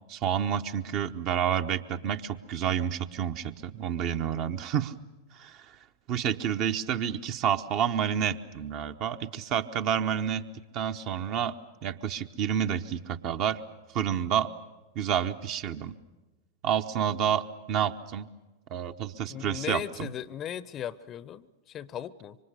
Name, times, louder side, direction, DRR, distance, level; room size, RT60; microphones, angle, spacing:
voice 1, 0.1-4.9 5.3-5.8 6.1-10.5 10.7-11.6 11.8-13.6 13.9-14.5 14.9-15.9 16.6-18.3 18.7-20.1, right 9 dB, 40° right, 8 dB, 1.0 m, -29 dB
voice 2, 19.3-22.4, left 10 dB, 30° left, 19 dB, 0.8 m, -37 dB
26.5 x 24.5 x 6.8 m, 1.1 s
figure-of-eight pair, 90°, 0 cm